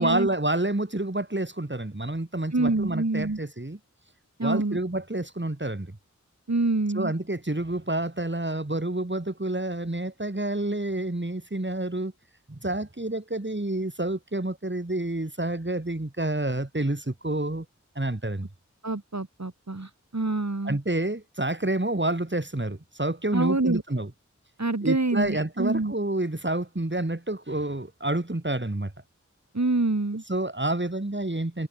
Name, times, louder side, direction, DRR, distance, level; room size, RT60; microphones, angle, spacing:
voice 1, 0.0-3.8 4.4-6.0 6.9-12.1 12.5-17.7 18.0-18.5 20.6-24.1 24.8-28.9 30.3-31.7, right 1 dB, 40° right, 6.0 m, -28 dB
voice 2, 2.5-3.4 4.4-4.8 6.5-7.1 18.8-20.8 23.3-23.8 24.6-25.9 29.5-30.2, right 2 dB, 60° right, 4.5 m, -26 dB
wide cardioid pair, 45°, 30 cm